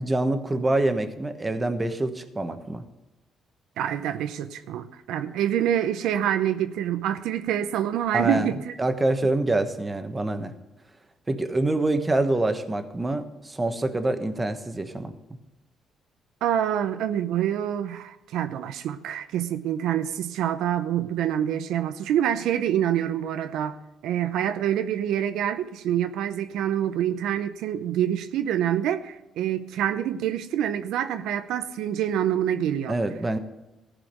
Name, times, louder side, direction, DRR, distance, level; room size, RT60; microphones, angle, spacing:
voice 1, 0.0-2.8 8.1-10.5 11.3-15.1 32.9-33.4, right 2 dB, 20° right, 8 dB, 1.2 m, -26 dB
voice 2, 3.8-8.7 16.4-23.8 24.0-33.0, right 10 dB, 90° right, 10 dB, 0.6 m, -26 dB
14.5 x 5.0 x 8.9 m, 1.0 s
cardioid pair, 90°, 0 cm